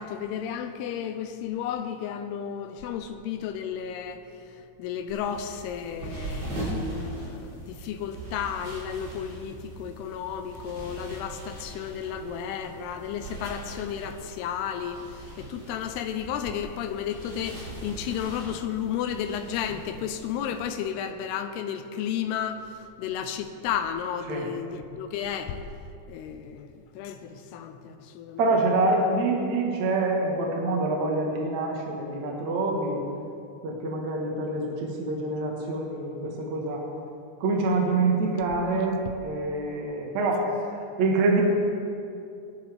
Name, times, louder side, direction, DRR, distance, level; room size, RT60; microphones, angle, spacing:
voice 1, 0.0-4.2 4.5-6.5 6.9-25.6 26.1-28.4, left 8 dB, 85° left, 7 dB, 2.4 m, -33 dB
sound 1, 5.1-20.7, right 1 dB, 30° right, 3.0 m, -40 dB
voice 2, 28.4-33.0 33.6-36.8 37.4-41.4, right 2 dB, 60° right, -1 dB, 2.0 m, -26 dB
22.0 x 11.5 x 3.5 m, 2.6 s
omnidirectional pair, 5.3 m